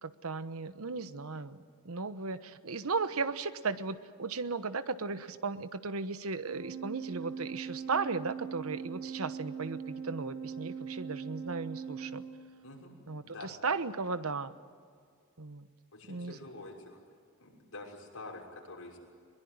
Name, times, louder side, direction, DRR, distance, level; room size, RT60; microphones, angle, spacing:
voice 1, 0.0-1.6 1.8-12.2 13.1-14.5 15.4-15.7 16.1-16.4, right 4 dB, 85° right, 12 dB, 1.1 m, -36 dB
Organ, 6.4-12.9, right 6 dB, 60° right, 1.5 m, -41 dB
voice 2, 12.6-12.9 13.2-13.5 15.9-17.0 17.4-19.0, left 2 dB, 85° left, -1 dB, 6.1 m, -47 dB
22.0 x 22.0 x 9.6 m, 2.1 s
head